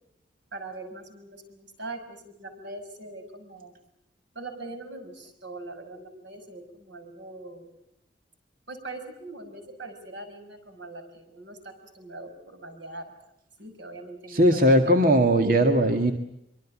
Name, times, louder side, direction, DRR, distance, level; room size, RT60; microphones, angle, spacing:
voice 1, 0.5-3.7 4.3-7.7 8.7-13.1 13.6-14.7, right 2 dB, 90° right, 6 dB, 6.3 m, -41 dB
voice 2, 14.3-16.1, equal, 50° right, 5 dB, 2.0 m, -19 dB
25.0 x 24.5 x 7.4 m, 0.80 s
head